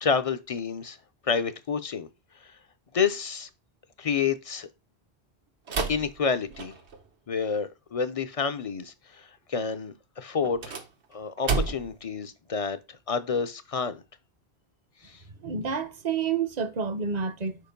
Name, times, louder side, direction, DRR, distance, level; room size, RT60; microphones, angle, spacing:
voice 1, 0.0-1.0 1.2-2.1 2.4-2.5 2.9-3.5 4.0-4.7 5.9-6.7 7.3-10.7 11.1-14.0 15.0-15.2, left 5 dB, 45° left, 0.5 m, -29 dB
sound 1, 5.7-7.1 10.4-12.1, right 4 dB, 85° right, 1.3 m, -31 dB
voice 2, 15.4-17.6, right 6 dB, 45° right, 0.7 m, -29 dB
5.0 x 4.7 x 5.1 m
omnidirectional pair, 1.1 m